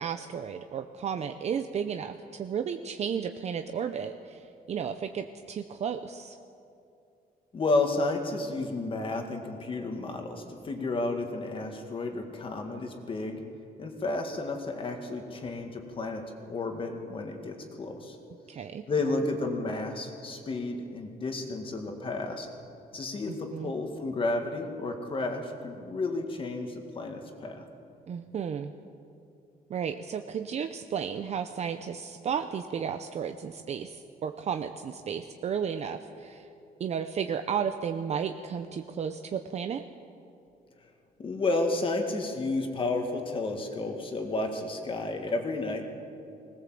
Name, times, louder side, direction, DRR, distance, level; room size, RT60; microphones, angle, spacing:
voice 1, 0.0-6.4 18.5-18.9 23.3-23.7 28.1-28.7 29.7-36.5 36.8-39.8, right 7 dB, 45° right, 8 dB, 0.7 m, -33 dB
voice 2, 7.5-13.4 13.8-18.2 18.9-22.5 22.9-27.7 41.2-46.1, left 2 dB, 35° left, 4 dB, 2.0 m, -32 dB
20.5 x 19.0 x 7.7 m, 2.6 s
wide cardioid pair, 175°, 16 cm